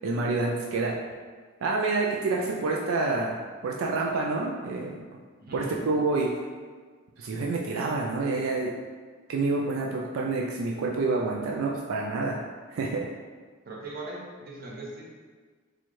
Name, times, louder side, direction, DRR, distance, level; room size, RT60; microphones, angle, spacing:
voice 1, 0.0-1.0 1.6-3.4 3.6-5.0 5.5-6.3 7.2-8.7 9.3-12.4 12.7-13.1, right 3 dB, 85° right, -1 dB, 0.4 m, -28 dB
voice 2, 5.4-5.8 13.6-15.0, right 2 dB, 50° right, -4 dB, 0.7 m, -39 dB
4.2 x 2.3 x 3.0 m, 1.5 s
head